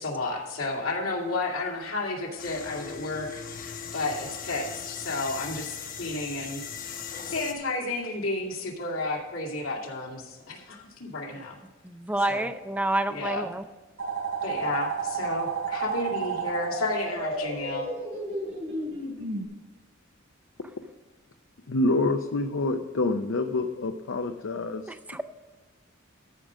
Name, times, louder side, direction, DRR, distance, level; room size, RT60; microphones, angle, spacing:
voice 1, 0.0-7.0 7.2-11.6 12.3-12.5 13.1-13.5 14.4-17.9, left 2 dB, 85° left, -2 dB, 2.4 m, -32 dB
sound 1, 2.4-7.5, left 7 dB, 45° left, 1.0 m, -39 dB
voice 2, 11.8-13.7 24.9-25.2, right 1 dB, 10° right, 9 dB, 0.5 m, -28 dB
sound 2, 14.0-19.5, right 4 dB, 65° right, 3.3 m, -32 dB
voice 3, 21.7-24.9, left 2 dB, 70° left, 6 dB, 0.6 m, -27 dB
13.5 x 5.0 x 6.4 m, 1.3 s
head